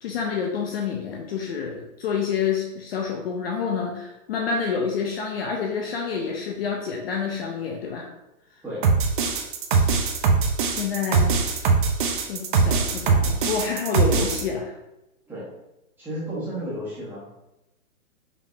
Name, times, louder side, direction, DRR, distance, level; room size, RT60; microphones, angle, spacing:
voice 1, 0.0-8.1 10.6-11.5 12.2-14.7, left 6 dB, 45° left, 0 dB, 0.6 m, -28 dB
sound 1, 8.8-14.4, right 4 dB, 40° right, 0.5 m, -21 dB
voice 2, 16.0-17.2, equal, 5° right, -10 dB, 1.4 m, -32 dB
5.3 x 3.3 x 2.7 m, 0.95 s
hypercardioid pair, 150°, 42 cm